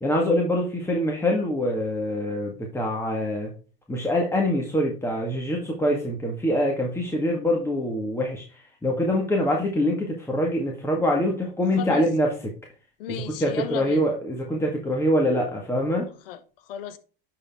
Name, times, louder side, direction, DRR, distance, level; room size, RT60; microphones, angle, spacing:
voice 1, 0.0-3.5 3.9-12.3 13.1-16.1, left 1 dB, 10° left, 1.7 m, -24 dB
voice 2, 11.7-12.1 13.0-14.1 16.2-17.0, left 10 dB, 70° left, 1.1 m, -35 dB
10.5 x 4.4 x 3.6 m
hypercardioid pair, 90°, 29 cm